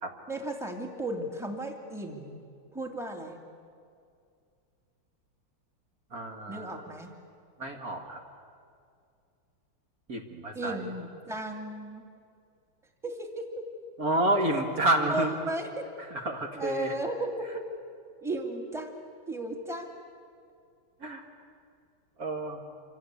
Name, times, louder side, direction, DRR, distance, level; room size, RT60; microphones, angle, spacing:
voice 1, 0.3-2.4 2.7-3.4 6.5-7.1 10.5-12.0 13.0-13.7 15.0-15.9 16.5-17.7 18.2-20.0, right 1 dB, ahead, 3 dB, 2.3 m, -35 dB
voice 2, 6.1-6.8 7.6-8.2 10.1-10.8 14.0-15.3 16.1-16.9 21.0-21.2 22.2-22.6, right 1 dB, 45° right, 2 dB, 2.2 m, -29 dB
27.0 x 25.5 x 8.3 m, 2.4 s
omnidirectional pair, 2.3 m